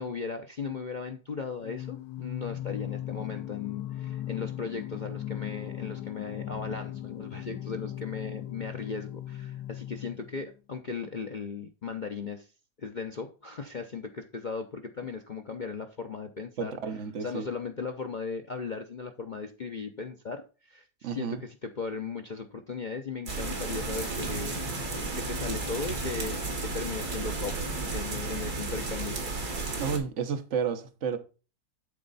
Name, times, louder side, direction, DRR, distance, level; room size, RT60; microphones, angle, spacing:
voice 1, 0.0-12.5 12.8-16.8 17.2-24.5 25.1-27.6 27.9-29.2, left 5 dB, 40° left, 0.7 m, -37 dB
Singing, 1.6-10.5, left 12 dB, 80° left, 1.1 m, -38 dB
voice 2, 16.6-17.5 21.0-21.4 29.8-31.2, right 6 dB, 55° right, 1.3 m, -31 dB
sound 1, 23.3-30.0, right 3 dB, 75° right, 2.7 m, -33 dB
12.0 x 4.3 x 4.0 m
omnidirectional pair, 1.7 m